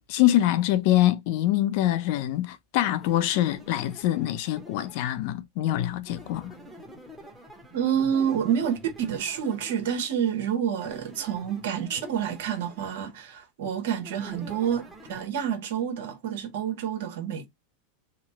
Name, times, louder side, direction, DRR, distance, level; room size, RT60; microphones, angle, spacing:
voice 1, 0.1-6.5, left 14 dB, 60° left, 0.5 m, -24 dB
sound 1, 3.0-5.2 6.0-10.2 10.8-12.9 14.0-15.3, equal, ahead, 0.9 m, -47 dB
voice 2, 7.7-8.8 9.1-17.5, right 8 dB, 70° right, 1.0 m, -28 dB
2.9 x 2.1 x 2.8 m
hypercardioid pair, 110°, 0 cm